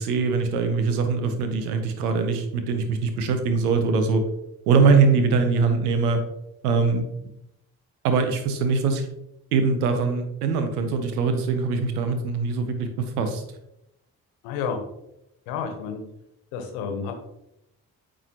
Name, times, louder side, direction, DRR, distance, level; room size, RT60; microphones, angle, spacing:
voice 1, 0.0-4.2 4.7-6.2 6.6-7.1 8.0-9.1 9.5-13.4, right 4 dB, 85° right, 7 dB, 0.9 m, -22 dB
voice 2, 14.4-14.8 15.5-16.0 16.5-17.1, left 6 dB, 75° left, 5 dB, 1.2 m, -30 dB
8.8 x 5.0 x 3.0 m, 0.83 s
hypercardioid pair, 40°, 44 cm